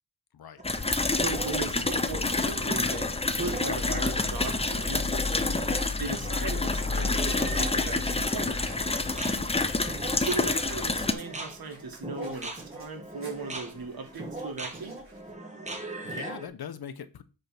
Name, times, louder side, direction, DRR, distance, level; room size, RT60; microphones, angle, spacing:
sound 1, 0.6-11.1, left 3 dB, 15° left, 0.6 m, -28 dB
sound 2, 0.6-16.5, right 2 dB, 20° right, 1.4 m, -40 dB
voice 1, 1.1-5.6 6.0-8.7 10.2-15.0, right 3 dB, 65° right, 1.8 m, -37 dB
sound 3, 2.3-15.3, right 2 dB, 35° right, 3.7 m, -53 dB
voice 2, 9.3-9.7 16.0-17.2, left 8 dB, 70° left, 0.8 m, -42 dB
8.1 x 3.5 x 5.9 m
wide cardioid pair, 110°, 39 cm